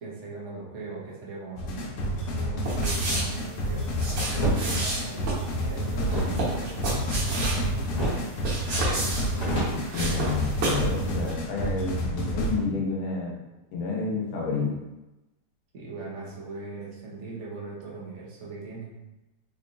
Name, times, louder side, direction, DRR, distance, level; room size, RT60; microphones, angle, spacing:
voice 1, 0.0-7.8 15.7-19.0, right 3 dB, 50° right, -4 dB, 0.9 m, -40 dB
sound 1, 1.6-12.6, equal, 90° left, 1.6 m, -29 dB
sound 2, 2.6-10.9 11.2-11.3, right 2 dB, 80° right, 2.2 m, -31 dB
sound 3, 4.3-4.6 6.0-7.6 7.9-8.3 8.6-8.7 9.1-10.6, right 1 dB, 30° left, 0.8 m, -30 dB
voice 2, 9.6-13.4 13.7-14.8, left 4 dB, 70° left, -2 dB, 1.6 m, -30 dB
4.5 x 2.8 x 2.6 m, 1.0 s
omnidirectional pair, 2.4 m